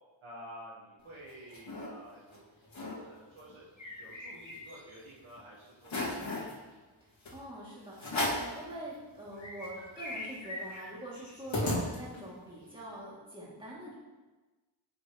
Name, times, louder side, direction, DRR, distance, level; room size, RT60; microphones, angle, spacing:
voice 1, 0.2-2.5 2.7-3.6 4.0-6.4, equal, 85° right, -6 dB, 1.4 m, -51 dB
sound 1, 1.0-1.9 2.3-2.4 2.6-3.0 3.4-5.0 5.4-5.5 5.8-6.5 7.2-7.4 8.0-8.6 9.0-9.1 9.3-12.4, left 1 dB, 70° left, 2.3 m, -36 dB
voice 2, 7.3-13.9, right 1 dB, 10° right, -7 dB, 2.4 m, -45 dB
7.2 x 6.8 x 3.1 m, 1.2 s
wide cardioid pair, 105°, 48 cm